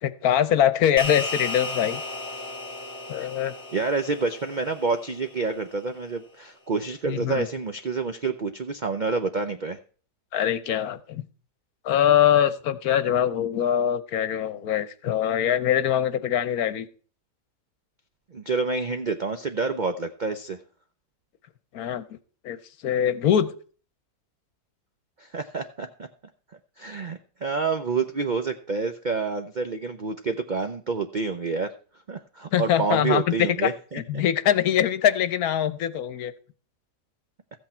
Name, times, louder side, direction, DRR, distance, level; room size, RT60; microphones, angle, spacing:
voice 1, 0.0-2.0 3.1-3.5 7.1-7.5 10.3-11.2 11.8-16.9 21.7-22.2 22.4-23.5 32.5-36.3, left 10 dB, 70° left, 14 dB, 1.2 m, -23 dB
sound 1, 1.0-5.6, left 2 dB, 20° left, 1.5 m, -35 dB
voice 2, 3.7-9.8 18.3-20.6 25.2-26.1 26.8-31.7 32.1-34.2, right 4 dB, 55° right, 7 dB, 0.5 m, -28 dB
14.0 x 8.3 x 4.3 m, 0.40 s
omnidirectional pair, 1.7 m